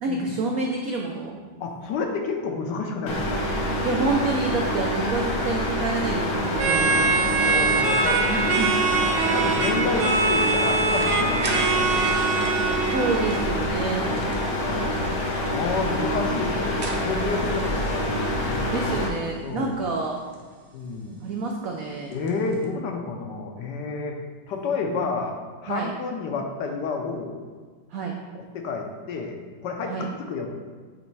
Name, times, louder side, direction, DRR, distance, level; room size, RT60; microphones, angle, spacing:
voice 1, 0.0-1.4 3.8-7.2 8.3-8.7 12.9-14.0 18.7-20.2 21.2-22.1 25.7-25.9 27.9-28.1 29.9-30.1, right 3 dB, 85° right, 1 dB, 0.7 m, -28 dB
voice 2, 1.6-3.4 6.7-7.0 7.4-8.7 9.3-12.1 14.0-14.3 14.6-18.9 19.4-19.8 20.7-21.2 22.1-24.2 24.5-27.4 28.3-30.5, left 4 dB, 70° left, 3 dB, 1.2 m, -30 dB
sound 1, 3.1-19.1, equal, 90° left, 1.8 m, -26 dB
sound 2, 6.6-13.4, right 4 dB, 60° right, 1.2 m, -23 dB
sound 3, 10.3-22.7, right 2 dB, 45° right, 0.7 m, -42 dB
8.3 x 3.1 x 4.6 m, 1.5 s
omnidirectional pair, 2.2 m